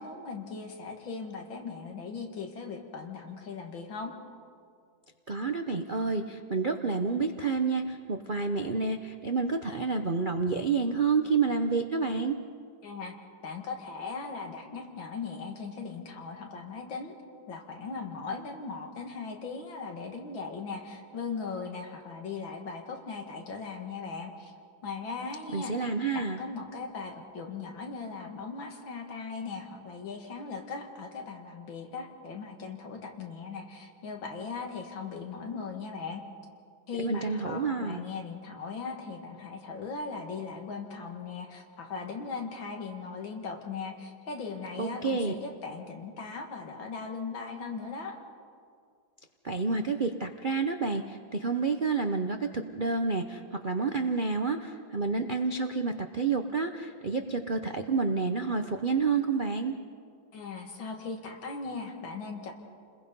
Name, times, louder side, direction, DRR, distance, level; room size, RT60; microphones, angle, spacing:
voice 1, 0.0-4.1 12.8-13.1 13.4-17.2 17.5-24.5 24.8-25.9 26.1-36.2 36.9-48.2 60.3-62.5, left 4 dB, 80° left, 3 dB, 2.8 m, -38 dB
voice 2, 5.3-12.4 25.5-26.4 37.0-38.0 44.8-45.3 49.4-59.8, right 4 dB, 50° right, 5 dB, 0.5 m, -29 dB
29.5 x 21.0 x 5.4 m, 2.2 s
omnidirectional pair, 2.1 m